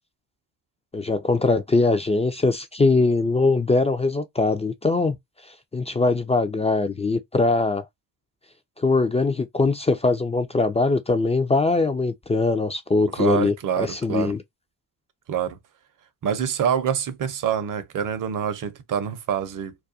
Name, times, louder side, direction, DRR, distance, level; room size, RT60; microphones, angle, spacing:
voice 1, 0.9-5.1 5.7-7.8 8.8-14.4, left 3 dB, 15° left, 0.3 m, -22 dB
voice 2, 13.2-14.3 15.3-15.6 16.2-19.8, right 8 dB, 45° right, 0.7 m, -26 dB
2.4 x 2.2 x 2.6 m
supercardioid pair, 50°, 44 cm